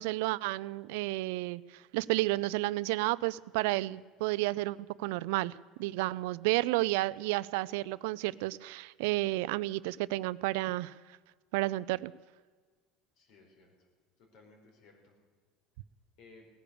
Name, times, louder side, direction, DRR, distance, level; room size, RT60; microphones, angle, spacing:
voice 1, 0.0-5.5 5.8-10.9 11.5-12.1, right 19 dB, 85° right, 19 dB, 0.4 m, -31 dB
voice 2, 13.2-13.9 14.2-15.2 16.2-16.5, left 3 dB, 60° left, 2 dB, 4.3 m, -59 dB
18.0 x 9.9 x 6.9 m, 1.5 s
cardioid pair, 135°, 0 cm